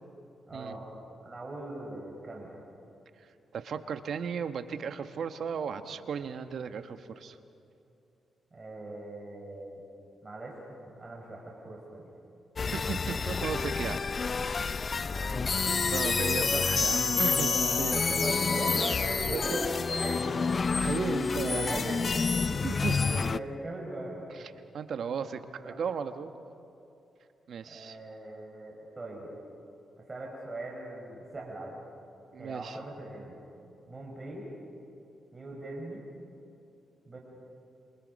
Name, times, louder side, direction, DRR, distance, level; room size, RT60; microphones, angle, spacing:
voice 1, 0.5-0.9 1.2-2.6 8.5-9.8 10.2-12.1 14.3-14.8 15.1-15.5 18.0-20.6 21.2-24.2 25.6-25.8 27.7-29.3 30.1-31.8 32.4-33.4 33.9-34.5 35.3-36.0 37.1-37.2, right 2 dB, 30° right, -2 dB, 5.3 m, -40 dB
voice 2, 3.5-7.4 12.7-14.0 14.4-14.6 15.1-15.2 15.9-18.2 19.3-19.6 19.9-20.2 20.7-21.8 22.6-23.0 24.7-26.3 27.5-28.0 32.3-32.8, right 6 dB, 70° right, 9 dB, 1.3 m, -35 dB
sound 1, 12.6-23.4, left 4 dB, 45° left, 0.5 m, -28 dB
27.5 x 27.5 x 5.4 m, 2.8 s
cardioid pair, 60°, 0 cm